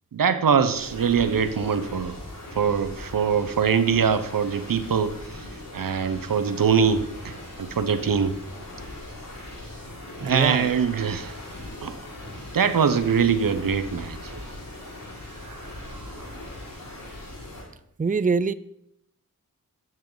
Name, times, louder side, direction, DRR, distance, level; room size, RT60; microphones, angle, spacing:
voice 1, 0.1-2.2 2.6-5.2 5.7-8.3 10.2-11.3 11.8-12.0 12.5-14.3 15.4-15.6 15.9-16.0, right 6 dB, 90° right, 12 dB, 0.9 m, -23 dB
sound 1, 0.7-17.6, left 1 dB, 85° left, 5.1 m, -40 dB
voice 2, 10.2-10.7 18.0-18.5, right 5 dB, 25° right, 17 dB, 0.5 m, -24 dB
13.0 x 9.5 x 4.0 m, 0.76 s
cardioid pair, 45°, 33 cm